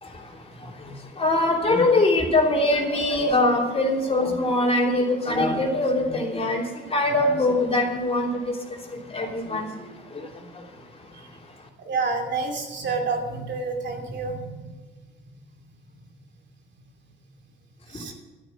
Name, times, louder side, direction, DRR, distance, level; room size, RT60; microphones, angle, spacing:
voice 1, 0.0-10.7 11.0-11.1 17.9-18.1, left 2 dB, 30° left, 0 dB, 3.1 m, -23 dB
voice 2, 11.8-14.5 17.9-18.1, right 4 dB, 65° right, 3 dB, 2.7 m, -28 dB
12.5 x 9.3 x 5.8 m, 1.3 s
cardioid pair, 90°, 20 cm